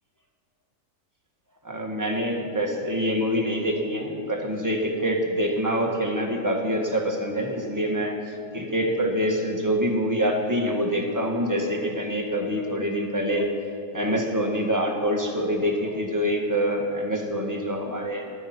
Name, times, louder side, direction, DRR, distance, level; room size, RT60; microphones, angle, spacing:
voice 1, 1.6-13.5 13.9-18.3, equal, 15° right, 1 dB, 1.4 m, -25 dB
20.0 x 11.5 x 4.4 m, 2.4 s
omnidirectional pair, 1.6 m